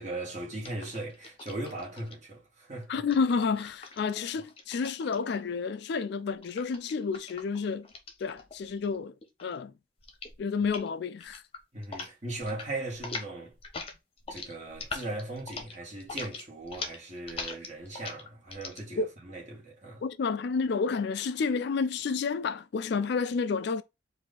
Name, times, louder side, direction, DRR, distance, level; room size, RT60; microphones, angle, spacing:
voice 1, 0.0-3.0 11.7-13.5 14.3-20.0, right 2 dB, 35° right, 1.9 m, -38 dB
sound 1, 0.6-2.1 3.0-5.5 6.4-9.0 9.2-9.6 10.0-10.4 10.6-10.9 11.2-12.1 12.4-12.7 12.9-18.8, left 4 dB, 30° left, 0.9 m, -42 dB
voice 2, 2.9-7.9 8.2-9.1 9.4-9.7 10.4-11.4 19.0-19.1 20.0-23.8, left 5 dB, 55° left, 0.3 m, -30 dB
4.7 x 2.7 x 3.7 m
head